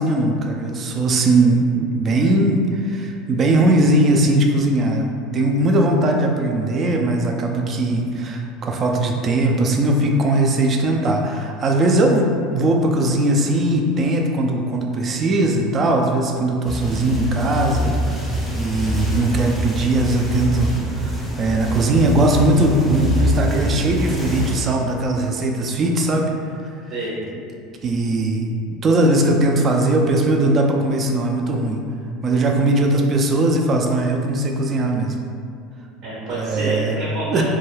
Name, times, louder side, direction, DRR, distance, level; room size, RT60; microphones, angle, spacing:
voice 1, 0.0-18.2 18.5-26.3 27.8-31.8 32.2-35.2 36.3-37.0 37.3-37.4, right 2 dB, 35° right, 2 dB, 0.4 m, -19 dB
sound 1, 16.6-24.6, equal, 5° left, 0.7 m, -25 dB
voice 2, 26.9-27.4 36.0-37.4, right 1 dB, 65° right, -7 dB, 0.7 m, -28 dB
2.3 x 2.2 x 3.1 m, 2.4 s
supercardioid pair, 95°, 0 cm